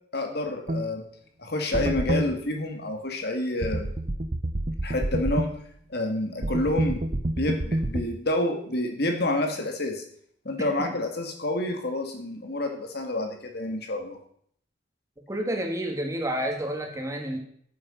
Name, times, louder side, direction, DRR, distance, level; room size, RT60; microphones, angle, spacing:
voice 1, 0.1-1.1 1.4-3.9 4.8-5.5 5.9-7.0 7.4-10.0 10.4-14.2, left 1 dB, 60° left, 4 dB, 2.2 m, -28 dB
sound 1, 0.7-0.8 1.7-2.3 3.6-5.5 6.4-8.0, right 1 dB, 40° right, 0.8 m, -27 dB
voice 2, 15.3-17.4, right 1 dB, 20° right, 2 dB, 2.3 m, -30 dB
14.0 x 8.9 x 5.7 m, 0.64 s
head